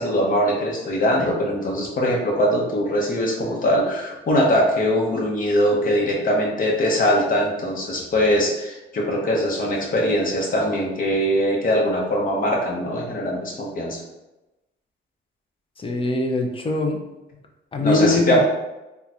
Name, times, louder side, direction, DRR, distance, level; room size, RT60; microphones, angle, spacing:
voice 1, 0.0-14.0 17.8-18.4, equal, 45° left, -2 dB, 0.9 m, -21 dB
voice 2, 15.8-17.0 17.7-18.4, left 2 dB, 25° left, 3 dB, 0.5 m, -21 dB
3.7 x 2.2 x 2.9 m, 1.0 s
cardioid pair, 90°, 20 cm